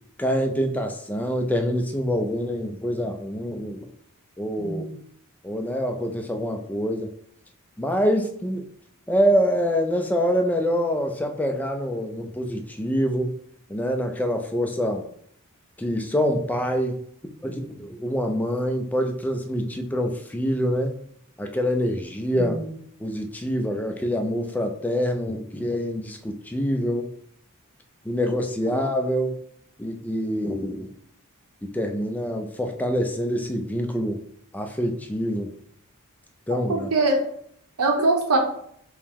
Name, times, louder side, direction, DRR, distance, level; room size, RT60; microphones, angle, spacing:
voice 1, 0.2-3.9 4.4-4.8 5.4-7.1 7.8-8.6 9.1-13.3 13.7-15.1 15.8-17.0 17.4-21.0 21.4-22.6 23.0-27.1 28.1-29.4 29.8-30.9 31.6-34.2 34.5-35.5 36.5-36.9, equal, 5° left, 4 dB, 0.4 m, -25 dB
voice 2, 4.6-4.9 22.3-22.7 36.7-37.2 37.8-38.4, right 2 dB, 90° right, 2 dB, 0.8 m, -23 dB
4.6 x 2.1 x 3.5 m, 0.67 s
head